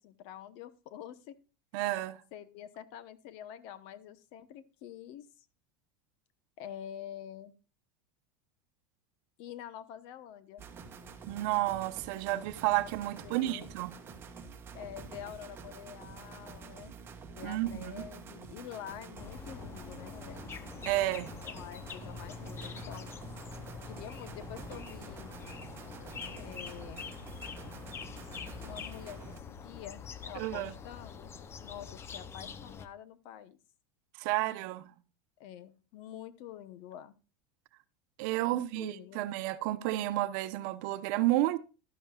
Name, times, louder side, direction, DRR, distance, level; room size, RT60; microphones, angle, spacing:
voice 1, 0.0-1.3 2.3-5.3 6.6-7.5 9.4-10.6 13.1-13.7 14.7-17.0 17.3-20.4 21.4-23.2 23.9-25.3 26.4-27.0 28.6-33.6 35.4-37.1 38.4-39.2, left 10 dB, 55° left, 1.0 m, -47 dB
voice 2, 1.7-2.2 11.3-13.9 17.4-18.1 20.8-21.3 30.4-30.7 34.2-34.9 38.2-41.6, right 16 dB, 60° right, 0.9 m, -31 dB
sound 1, 10.6-29.4, right 5 dB, 20° right, 1.3 m, -48 dB
sound 2, 19.2-32.9, left 6 dB, 25° left, 0.7 m, -45 dB
12.5 x 11.5 x 2.4 m
supercardioid pair, 140°, 11 cm